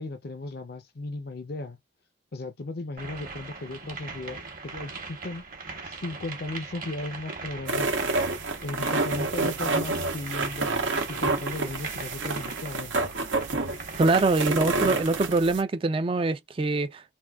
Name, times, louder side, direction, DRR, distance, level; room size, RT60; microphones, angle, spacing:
voice 1, 0.0-1.8 2.3-4.4 4.6-5.4 5.8-8.1 8.6-10.7 11.1-13.1, left 2 dB, 55° left, 0.6 m, -36 dB
sound 1, 3.0-15.0, right 4 dB, 50° right, 1.1 m, -41 dB
sound 2, 7.7-15.6, right 3 dB, 85° right, 0.9 m, -28 dB
voice 2, 14.0-17.0, right 3 dB, 30° right, 0.4 m, -24 dB
3.6 x 2.5 x 2.3 m
head